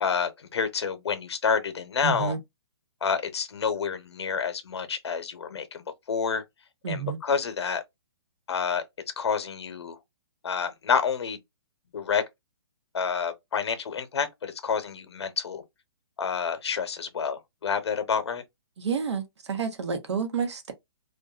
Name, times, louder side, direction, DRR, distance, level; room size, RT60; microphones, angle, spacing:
voice 1, 0.0-2.3 3.0-6.4 6.9-7.8 8.5-8.8 9.2-10.0 10.4-11.4 11.9-12.2 12.9-15.6 16.2-18.4, left 6 dB, 75° left, 0.8 m, -28 dB
voice 2, 2.0-2.4 6.8-7.2 18.8-20.7, right 6 dB, 85° right, 0.9 m, -29 dB
2.5 x 2.2 x 2.3 m
hypercardioid pair, 170°, 14 cm